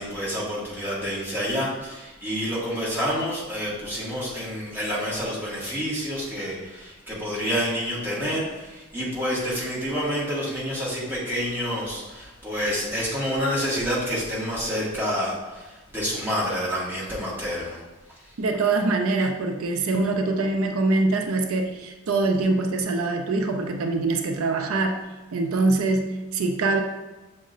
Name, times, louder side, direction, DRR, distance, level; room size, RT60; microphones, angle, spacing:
voice 1, 0.0-17.8, equal, 10° right, -7 dB, 1.2 m, -28 dB
voice 2, 18.4-25.0 25.3-26.8, right 3 dB, 85° right, 4 dB, 0.4 m, -24 dB
6.3 x 2.1 x 3.8 m, 1.1 s
head